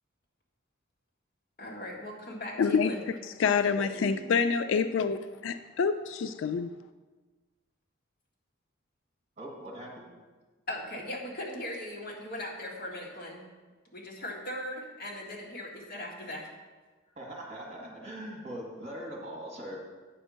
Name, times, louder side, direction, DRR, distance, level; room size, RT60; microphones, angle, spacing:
voice 1, 1.6-3.1 10.7-13.4 13.9-16.5, left 1 dB, 45° left, -2 dB, 1.6 m, -39 dB
voice 2, 2.6-2.9 3.4-6.7, left 5 dB, 70° left, 10 dB, 0.3 m, -27 dB
voice 3, 3.9-4.4 9.4-10.1 17.1-19.8, right 1 dB, 30° right, -1 dB, 1.6 m, -41 dB
9.1 x 4.4 x 6.3 m, 1.3 s
head